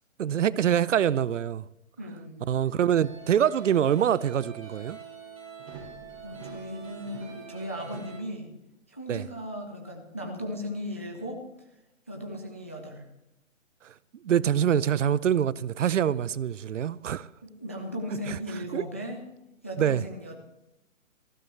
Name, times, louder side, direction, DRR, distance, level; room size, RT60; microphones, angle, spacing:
voice 1, 0.2-1.6 2.5-5.0 9.1-9.2 14.2-17.3 18.3-18.4 18.7-18.8 19.8-20.0, right 9 dB, 65° right, 0.6 m, -25 dB
voice 2, 2.0-2.5 6.2-8.5 8.9-11.4 12.1-13.0 17.4-19.2 19.6-20.4, equal, 10° left, 0.4 m, -37 dB
sound 1, 3.0-8.2, right 6 dB, 25° right, 6.4 m, -45 dB
19.0 x 15.0 x 3.2 m
hypercardioid pair, 155°, 40 cm